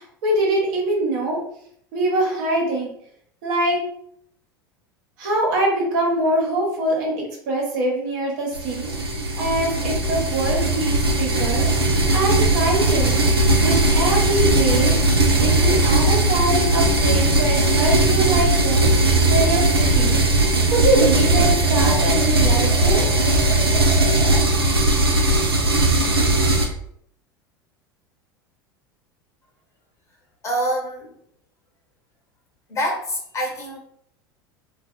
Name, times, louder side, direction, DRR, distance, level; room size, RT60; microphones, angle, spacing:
voice 1, 0.0-1.4 1.9-2.9 3.4-3.8 5.2-8.9 9.4-11.7 12.1-13.2 13.6-14.9 15.3-18.9 19.3-23.1 23.7-23.8, right 1 dB, 55° right, -2 dB, 1.0 m, -23 dB
sound 1, 8.5-26.7, right 2 dB, 85° right, 0.4 m, -18 dB
voice 2, 30.4-31.1 32.7-33.8, equal, 25° left, -1 dB, 0.8 m, -26 dB
2.6 x 2.3 x 2.2 m, 0.68 s
figure-of-eight pair, 75°, 12 cm